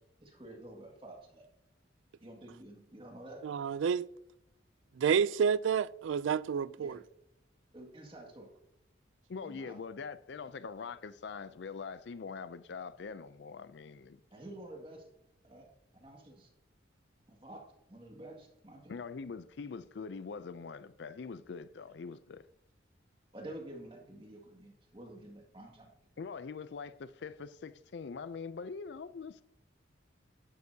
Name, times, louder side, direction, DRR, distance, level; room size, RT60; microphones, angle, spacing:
voice 1, 0.2-1.5 2.2-3.4 6.8-7.0 7.7-8.5 9.4-9.8 14.3-15.0 15.4-15.7 15.9-16.5 17.3-19.0 23.3-25.9, right 1 dB, 30° right, 1.9 m, -49 dB
voice 2, 3.4-4.1 5.0-7.0, right 7 dB, 85° right, 0.3 m, -29 dB
voice 3, 9.3-14.2 18.9-22.5 26.2-29.4, left 5 dB, 65° left, 0.4 m, -43 dB
11.0 x 11.0 x 2.8 m
head